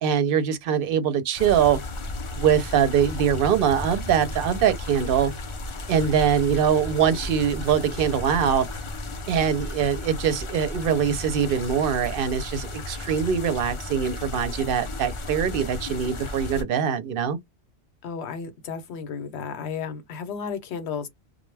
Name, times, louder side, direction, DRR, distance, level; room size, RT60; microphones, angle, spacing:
voice 1, 0.0-1.8 2.4-5.3 5.9-8.7 9.3-17.4, right 8 dB, 60° right, 0.7 m, -23 dB
sound 1, 1.4-16.6, left 2 dB, 50° left, 0.3 m, -34 dB
voice 2, 18.0-21.1, left 6 dB, 70° left, 0.9 m, -33 dB
2.1 x 2.0 x 3.2 m
omnidirectional pair, 1.2 m